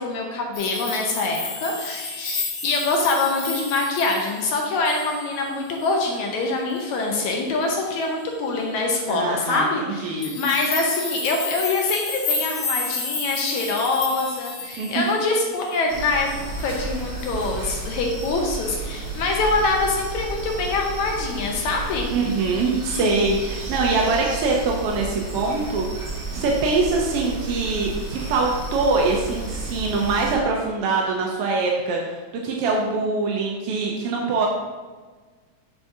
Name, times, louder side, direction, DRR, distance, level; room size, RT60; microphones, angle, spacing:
voice 1, 0.0-16.3 16.6-22.1, left 3 dB, 75° left, 1 dB, 2.1 m, -24 dB
sound 1, 0.5-5.5 5.8-6.1 6.8-7.0 10.2-15.9 16.3-16.8 17.2-17.6 18.2-18.3, left 4 dB, 60° left, 1.7 m, -32 dB
voice 2, 9.1-10.4 14.8-15.0 22.1-26.1 26.3-32.2 32.4-34.5, right 3 dB, 75° right, -1 dB, 1.3 m, -23 dB
sound 2, 15.9-30.3, right 2 dB, 55° right, 0.5 m, -32 dB
7.1 x 7.0 x 2.7 m, 1.4 s
omnidirectional pair, 3.4 m